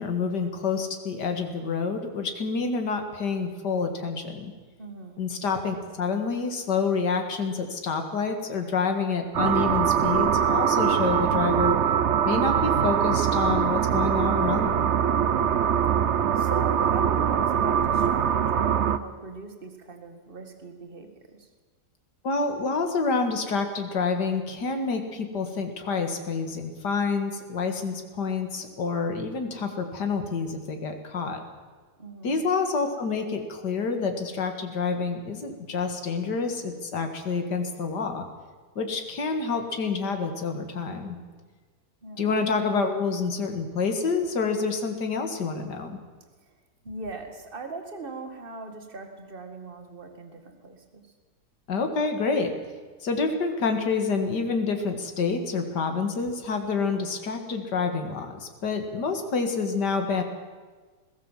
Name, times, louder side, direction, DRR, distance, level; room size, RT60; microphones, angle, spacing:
voice 1, 0.0-4.5 5.2-11.8 12.3-14.9 22.2-31.4 32.2-38.3 38.8-41.2 42.2-46.0 51.7-52.5 53.0-60.2, left 4 dB, 80° left, 5 dB, 2.5 m, -28 dB
voice 2, 4.8-5.2 15.3-15.7 16.3-21.1 21.4-21.5 32.0-32.4 42.0-42.4 46.8-51.0, right 3 dB, 30° right, 6 dB, 2.2 m, -40 dB
sound 1, 9.3-19.0, right 8 dB, 55° right, 0.9 m, -23 dB
21.5 x 17.0 x 7.5 m, 1.4 s
omnidirectional pair, 1.8 m